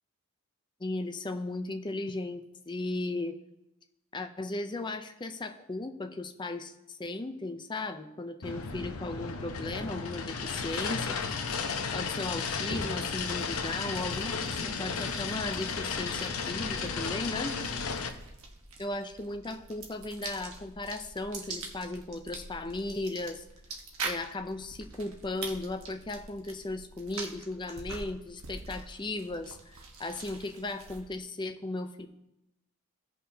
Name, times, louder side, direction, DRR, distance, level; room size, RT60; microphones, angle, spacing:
voice 1, 0.8-3.4 4.1-11.2 11.9-17.6 18.8-23.4 24.0-32.1, left 2 dB, 20° left, 8 dB, 0.5 m, -36 dB
sound 1, 8.4-18.1, left 5 dB, 70° left, 0.8 m, -34 dB
sound 2, 9.4-17.7, equal, 35° right, 3.6 m, -50 dB
sound 3, 13.0-31.2, right 3 dB, 70° right, 1.2 m, -45 dB
16.0 x 5.6 x 2.8 m, 0.89 s
head